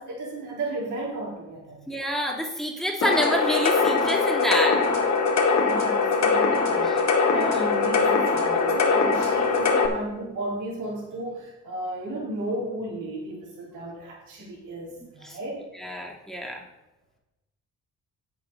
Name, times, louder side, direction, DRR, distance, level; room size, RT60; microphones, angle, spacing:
voice 1, 0.0-1.9 5.6-15.6, right 1 dB, 80° right, -4 dB, 4.2 m, -34 dB
voice 2, 1.9-4.8 6.8-7.0 7.3-7.7 15.2-15.4 15.7-16.6, equal, ahead, -1 dB, 2.4 m, -28 dB
sound 1, 3.0-9.9, left 4 dB, 65° left, 2.2 m, -22 dB
8.4 x 7.7 x 5.6 m, 0.99 s
cardioid pair, 90°, 30 cm